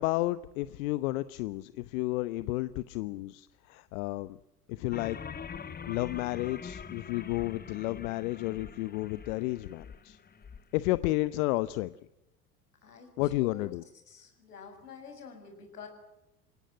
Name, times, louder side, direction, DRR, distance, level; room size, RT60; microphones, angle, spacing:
voice 1, 0.0-4.4 4.7-5.2 5.9-10.2 10.7-11.9 13.2-13.8, left 18 dB, 65° left, 15 dB, 0.9 m, -32 dB
sound 1, 4.9-10.6, left 6 dB, 20° left, 1.3 m, -44 dB
voice 2, 12.8-13.7 14.0-15.9, left 6 dB, 85° left, 4 dB, 6.8 m, -48 dB
28.5 x 17.5 x 7.7 m, 0.93 s
hypercardioid pair, 75°, 45 cm